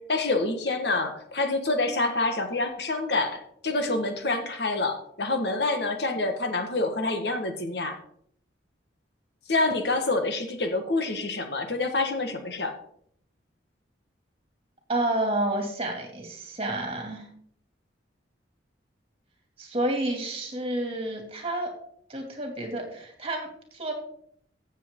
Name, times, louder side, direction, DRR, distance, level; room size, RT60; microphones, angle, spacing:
voice 1, 0.0-8.0 9.5-12.7, left 2 dB, 65° left, 6 dB, 1.5 m, -27 dB
voice 2, 14.9-17.3 19.6-21.7 22.1-23.9, right 1 dB, 30° right, 3 dB, 2.5 m, -30 dB
15.0 x 7.4 x 3.7 m, 0.66 s
head